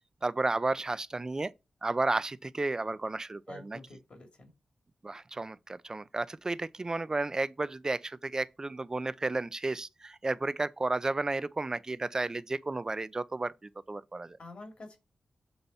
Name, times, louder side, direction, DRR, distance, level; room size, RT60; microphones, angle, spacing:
voice 1, 0.2-1.5 1.8-3.8 5.0-14.4, right 2 dB, 25° right, 0.5 m, -32 dB
voice 2, 3.5-4.5 14.4-15.0, left 2 dB, 55° left, 2.5 m, -48 dB
7.0 x 3.9 x 5.6 m
wide cardioid pair, 85°, 2 cm